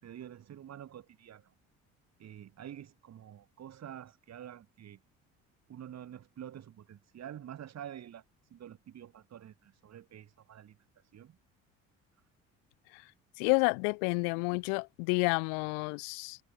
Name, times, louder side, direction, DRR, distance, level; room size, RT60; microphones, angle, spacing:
voice 1, 0.0-1.5 2.2-5.0 5.7-8.2 8.5-10.8 11.1-11.4, right 10 dB, 55° right, 5.8 m, -48 dB
voice 2, 13.4-16.4, left 40 dB or more, 85° left, 0.6 m, -30 dB
supercardioid pair, 75°, 31 cm